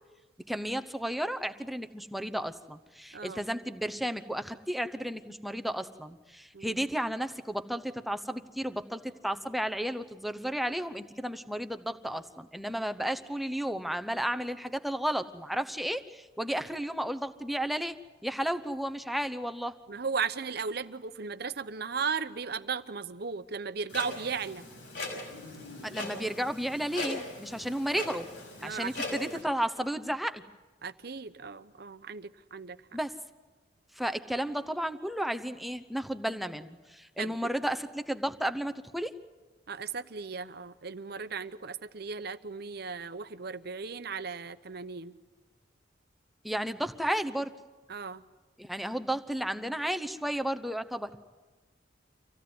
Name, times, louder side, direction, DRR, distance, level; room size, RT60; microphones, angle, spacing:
voice 1, 0.5-18.0 18.2-19.8 25.8-28.3 28.6-30.4 32.9-33.2 33.9-39.2 46.4-47.5 48.6-51.2, equal, ahead, 8 dB, 0.8 m, -33 dB
voice 2, 19.9-24.6 28.6-29.2 30.8-32.8 37.2-37.5 39.7-45.1 47.9-48.2, right 5 dB, 60° right, 12 dB, 0.9 m, -36 dB
Clock, 23.9-29.4, left 2 dB, 75° left, 5.9 m, -40 dB
25.5 x 16.0 x 9.5 m, 1.2 s
head